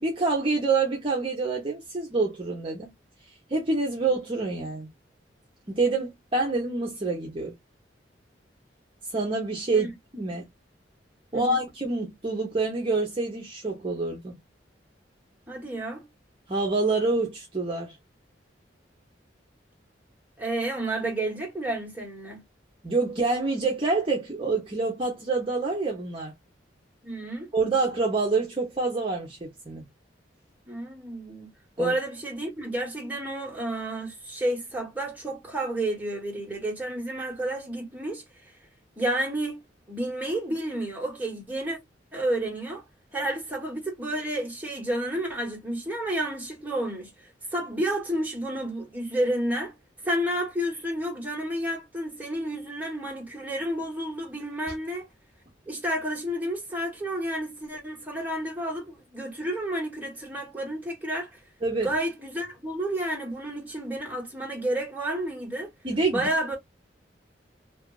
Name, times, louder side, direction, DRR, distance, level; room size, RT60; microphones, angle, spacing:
voice 1, 0.0-2.9 3.5-4.9 5.7-7.5 9.1-9.9 10.1-10.4 11.3-14.3 16.5-17.9 22.8-26.3 27.5-29.9 31.8-31.9 61.6-61.9 65.8-66.2, right 3 dB, 30° right, 0.7 m, -27 dB
voice 2, 11.3-11.6 15.5-16.1 20.4-22.4 27.0-27.5 30.7-38.2 39.0-41.8 42.1-42.8 43.1-47.1 47.5-49.7 50.0-55.1 55.7-61.4 61.8-65.7 66.1-66.6, right 1 dB, 10° right, 1.2 m, -30 dB
2.9 x 2.4 x 2.3 m
head